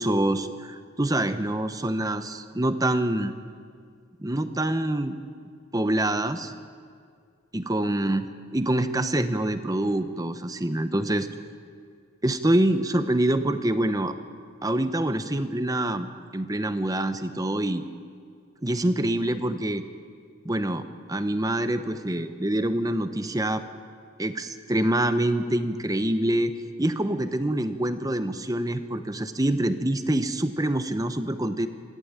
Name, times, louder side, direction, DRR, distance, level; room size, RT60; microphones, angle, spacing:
voice 1, 0.0-3.3 4.2-5.2 5.7-6.5 7.5-8.3 8.5-11.3 12.2-14.1 14.6-16.1 16.3-17.8 18.6-19.9 20.4-20.8 21.1-23.6 24.2-26.5 26.8-31.7, right 1 dB, 15° right, 10 dB, 1.0 m, -25 dB
25.0 x 15.0 x 8.8 m, 2.1 s
head